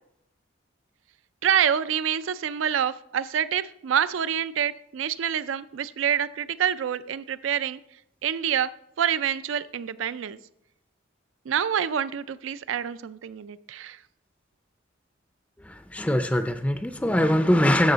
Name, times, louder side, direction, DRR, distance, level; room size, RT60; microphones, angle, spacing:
voice 1, 1.4-7.8 8.2-8.7 9.0-10.4 11.5-14.0, right 8 dB, 90° right, 16 dB, 0.4 m, -27 dB
voice 2, 15.6-17.9, left 1 dB, 5° left, 8 dB, 0.4 m, -22 dB
13.5 x 6.3 x 3.9 m, 0.79 s
head